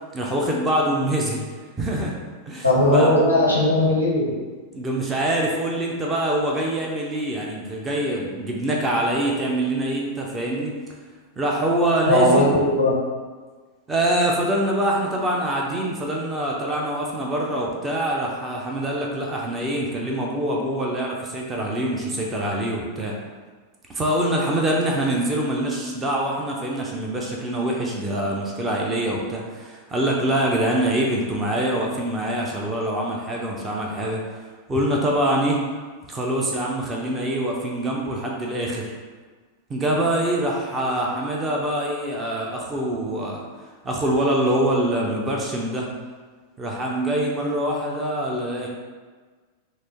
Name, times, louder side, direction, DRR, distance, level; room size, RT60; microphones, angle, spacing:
voice 1, 0.1-1.4 1.8-2.2 2.5-3.2 4.7-10.8 11.4-12.5 13.9-23.2 23.9-34.4 34.7-35.6 36.1-38.9 39.7-43.4 43.8-45.9 46.6-48.7, right 1 dB, 20° right, -1 dB, 0.6 m, -24 dB
voice 2, 2.6-4.3 12.1-12.9, left 1 dB, 90° right, -7 dB, 1.1 m, -18 dB
6.0 x 2.0 x 2.9 m, 1.4 s
figure-of-eight pair, 90°, 0 cm